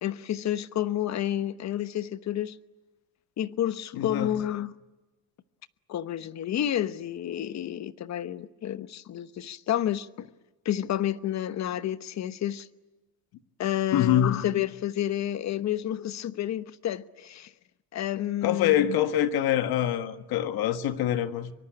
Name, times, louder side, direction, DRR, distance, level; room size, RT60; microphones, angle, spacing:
voice 1, 0.0-2.6 3.4-4.7 5.9-10.3 10.6-12.7 13.6-17.5 17.9-19.0, left 11 dB, 45° left, 1.1 m, -30 dB
voice 2, 3.9-4.3 13.9-14.4 18.4-21.5, left 11 dB, 75° left, 1.7 m, -25 dB
25.0 x 23.5 x 10.0 m
cardioid pair, 135°, 37 cm